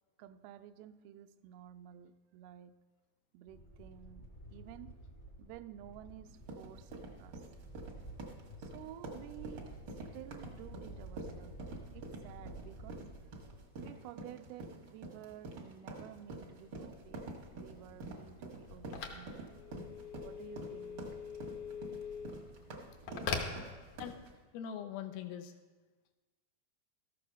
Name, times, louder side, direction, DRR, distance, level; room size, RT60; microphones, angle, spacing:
voice 1, 0.2-2.8 3.3-5.0 5.4-7.4 8.6-9.8 10.1-11.6 11.9-13.1 13.8-19.5 20.2-21.2 22.8-23.6, right 11 dB, 85° right, 2.4 m, -52 dB
sound 1, 3.5-13.6, right 1 dB, 20° left, 0.7 m, -51 dB
sound 2, 6.3-24.3, right 2 dB, 65° right, 1.1 m, -47 dB
Telephone, 16.6-24.4, left 5 dB, 70° left, 1.8 m, -44 dB
voice 2, 24.5-25.5, left 9 dB, 85° left, 2.5 m, -42 dB
13.5 x 6.8 x 6.1 m
omnidirectional pair, 4.3 m